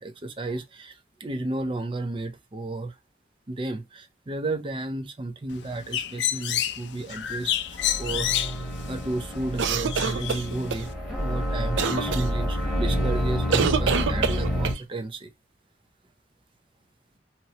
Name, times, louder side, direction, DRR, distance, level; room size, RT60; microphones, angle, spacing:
voice 1, 0.0-2.9 3.5-7.5 8.0-8.5 8.9-15.3, right 2 dB, 30° right, 0.5 m, -33 dB
Bird, 5.5-10.9, left 11 dB, 75° left, 0.4 m, -30 dB
sound 1, 7.3-14.7, equal, 5° right, 1.1 m, -28 dB
sound 2, 9.6-10.8 11.8-12.2 13.5-14.8, right 6 dB, 90° right, 0.4 m, -25 dB
2.9 x 2.9 x 2.8 m
head